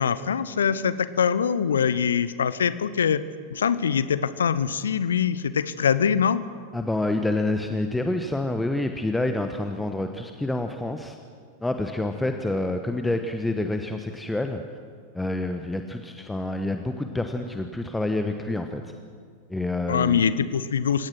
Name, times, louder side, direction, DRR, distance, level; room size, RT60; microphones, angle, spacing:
voice 1, 0.0-3.2 3.5-6.4 19.9-21.1, left 7 dB, 65° left, 15 dB, 0.9 m, -23 dB
voice 2, 6.7-11.2 11.6-14.6 15.1-18.9 19.5-20.2, left 2 dB, 5° left, 6 dB, 1.2 m, -28 dB
28.5 x 17.0 x 6.2 m, 2.1 s
figure-of-eight pair, 90°, 0 cm